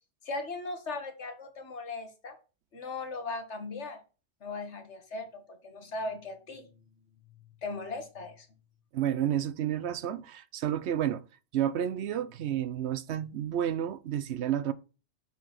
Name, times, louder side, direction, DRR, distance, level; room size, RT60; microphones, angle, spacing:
voice 1, 0.2-2.4 2.7-4.0 4.4-6.7 7.6-8.5, left 3 dB, 75° left, 1.7 m, -38 dB
voice 2, 8.9-11.2 11.5-14.7, right 10 dB, 70° right, 0.9 m, -30 dB
6.8 x 4.8 x 4.0 m
omnidirectional pair, 1.2 m